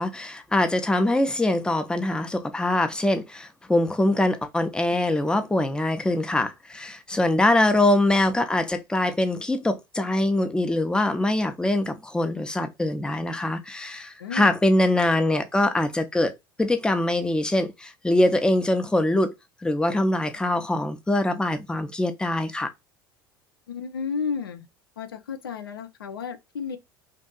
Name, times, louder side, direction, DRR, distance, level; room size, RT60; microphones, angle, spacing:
voice 1, 0.0-19.3 19.6-22.7, left 1 dB, 5° left, 0.5 m, -23 dB
voice 2, 14.2-14.5 23.7-24.7 25.0-26.8, left 6 dB, 85° left, 0.4 m, -32 dB
2.6 x 2.4 x 2.3 m
hypercardioid pair, 75°, 12 cm